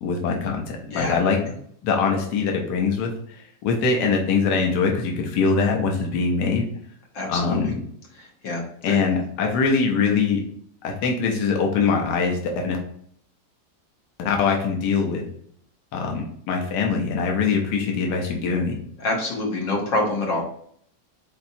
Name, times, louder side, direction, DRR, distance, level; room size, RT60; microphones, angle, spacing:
voice 1, 0.0-1.5 1.8-3.1 3.6-6.7 7.3-7.8 8.8-10.4 10.8-12.4 12.6-12.8 14.2-15.2 15.9-18.8, left 5 dB, 70° left, 1 dB, 1.2 m, -22 dB
voice 2, 7.1-7.7 8.2-9.0 19.0-20.4, left 2 dB, 85° left, -1 dB, 1.9 m, -26 dB
4.3 x 4.1 x 2.7 m, 0.63 s
omnidirectional pair, 1.9 m